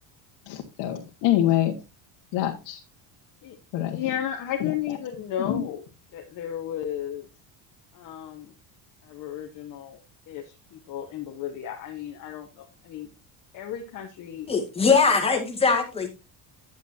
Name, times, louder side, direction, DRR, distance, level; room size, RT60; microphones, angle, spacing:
voice 1, 0.5-1.8 2.3-2.8 3.7-4.0 5.4-5.6, left 12 dB, 70° left, 1 dB, 1.6 m, -25 dB
voice 2, 3.4-5.9 6.1-7.3 7.9-8.5 9.0-10.0 10.3-13.1 13.5-14.5, left 10 dB, 40° left, 2 dB, 1.2 m, -34 dB
voice 3, 14.5-16.1, left 5 dB, 15° left, 2 dB, 1.8 m, -21 dB
10.0 x 8.8 x 2.7 m, 0.26 s
cardioid pair, 170°, 45 cm